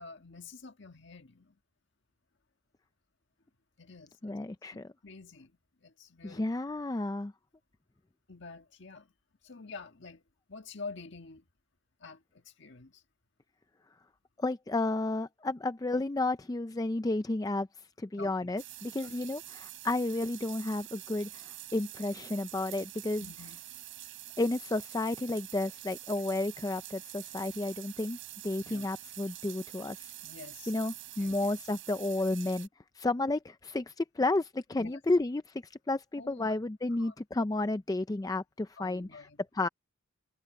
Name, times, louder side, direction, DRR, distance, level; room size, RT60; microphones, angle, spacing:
voice 1, 0.0-1.6 3.8-4.4 4.7-5.5 5.8-6.5 8.3-9.1 9.4-10.2 10.5-11.5 12.0-13.0 18.2-18.5 18.9-19.1 23.2-23.6 28.6-28.9 30.2-30.7 31.2-31.4 34.8-35.0 36.2-36.5 37.0-37.1 38.8-39.4, left 4 dB, 60° left, 1.6 m, -48 dB
voice 2, 4.2-4.9 6.2-7.3 14.4-17.7 18.0-23.3 24.4-28.2 28.4-30.1 30.7-32.7 33.0-39.1 39.5-39.7, left 2 dB, 15° left, 0.4 m, -32 dB
sound 1, 18.6-32.7, right 14 dB, 60° right, 7.6 m, -46 dB
head